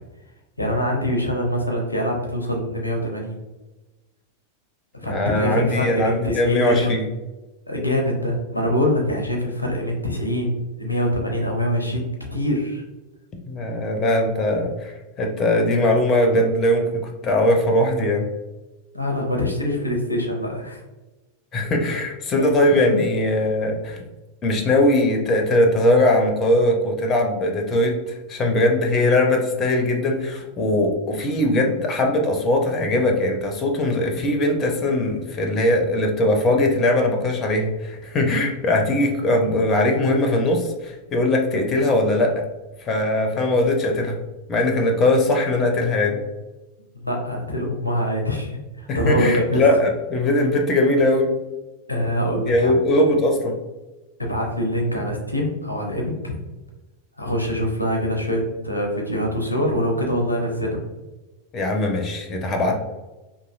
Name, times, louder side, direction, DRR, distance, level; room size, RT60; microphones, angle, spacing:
voice 1, 0.6-3.4 5.0-6.9 7.7-12.8 18.9-20.8 22.9-23.0 47.0-49.6 51.9-52.7 54.2-56.3 57.2-60.8 62.6-62.7, equal, 85° left, 1 dB, 0.5 m, -24 dB
voice 2, 5.1-7.0 13.5-18.2 21.5-24.0 24.4-42.4 42.8-44.2 44.5-46.2 48.9-51.3 52.5-53.6 61.5-62.7, left 1 dB, 25° left, 3 dB, 0.5 m, -20 dB
2.9 x 2.4 x 2.4 m, 1.1 s
figure-of-eight pair, 90°, 0 cm